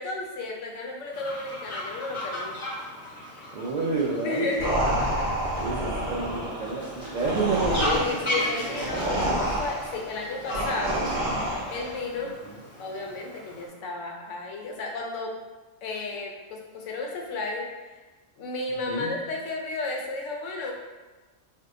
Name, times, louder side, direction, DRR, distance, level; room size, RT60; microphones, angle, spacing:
voice 1, 0.0-2.5 4.2-5.0 7.8-11.0 11.7-12.3 12.8-15.3 15.8-18.0 18.4-20.7, left 3 dB, 75° left, 0 dB, 0.9 m, -33 dB
Fowl, 1.1-13.7, left 1 dB, 30° left, 0.7 m, -36 dB
voice 2, 3.3-4.5 5.6-8.8 12.2-12.5 18.9-19.1, right 3 dB, 75° right, -5 dB, 0.4 m, -30 dB
sound 1, 4.6-12.0, right 1 dB, 50° right, 0.7 m, -28 dB
2.7 x 2.1 x 3.6 m, 1.2 s
omnidirectional pair, 1.3 m